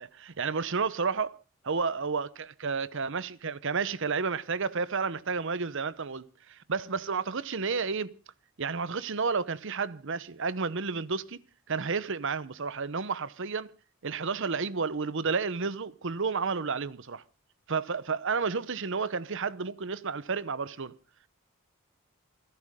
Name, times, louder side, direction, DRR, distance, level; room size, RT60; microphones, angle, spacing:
voice 1, 0.0-1.4 1.6-8.1 8.6-11.4 11.7-13.7 14.0-17.2 17.7-20.9, right 5 dB, 65° right, 0.9 m, -31 dB
28.5 x 12.0 x 3.7 m
head